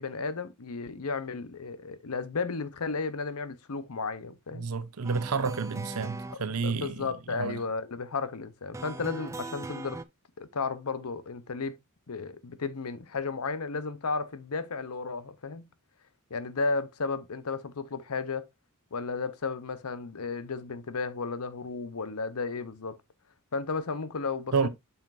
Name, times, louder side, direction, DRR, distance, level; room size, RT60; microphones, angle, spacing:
voice 1, 0.0-4.7 6.3-10.0 10.4-11.8 12.1-15.7 16.3-18.5 18.9-23.0 23.5-24.7, left 4 dB, 80° left, 0.8 m, -34 dB
voice 2, 4.5-7.6 24.5-24.7, right 5 dB, 80° right, 0.7 m, -30 dB
sound 1, 5.0-6.3 8.7-10.0, right 2 dB, 15° right, 0.3 m, -39 dB
7.4 x 5.7 x 2.6 m
head